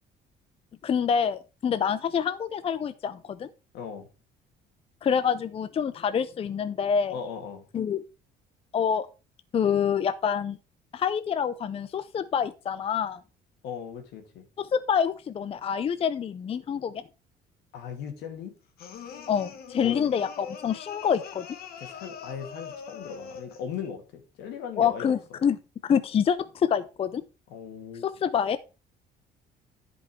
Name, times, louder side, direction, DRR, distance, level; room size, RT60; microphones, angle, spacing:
voice 1, 0.8-3.5 5.0-7.2 7.7-8.0 8.7-9.1 9.5-10.6 10.9-13.2 14.6-17.0 19.3-21.5 24.8-25.6 25.8-27.2 28.0-28.6, left 7 dB, 35° left, 0.5 m, -26 dB
voice 2, 3.7-4.1 7.1-7.7 13.6-14.5 17.7-18.5 19.8-20.1 21.8-25.1 27.5-28.1, left 7 dB, 85° left, 2.4 m, -38 dB
sound 1, 18.8-23.7, left 6 dB, 65° left, 1.6 m, -42 dB
10.5 x 5.3 x 4.5 m
cardioid pair, 110°, 17 cm